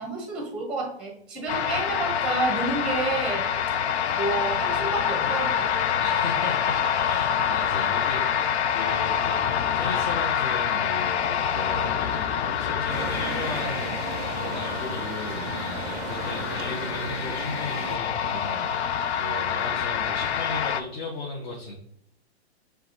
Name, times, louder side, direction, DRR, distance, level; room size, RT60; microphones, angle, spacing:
voice 1, 0.0-3.5 4.1-5.7, right 2 dB, ahead, 1 dB, 0.7 m, -29 dB
sound 1, 1.5-20.8, left 8 dB, 75° left, 0.5 m, -26 dB
voice 2, 6.0-9.4 9.7-21.7, left 2 dB, 45° left, 0 dB, 0.9 m, -36 dB
sound 2, 12.9-18.0, right 7 dB, 40° right, 0.4 m, -36 dB
6.6 x 2.3 x 3.0 m, 0.69 s
hypercardioid pair, 140°, 33 cm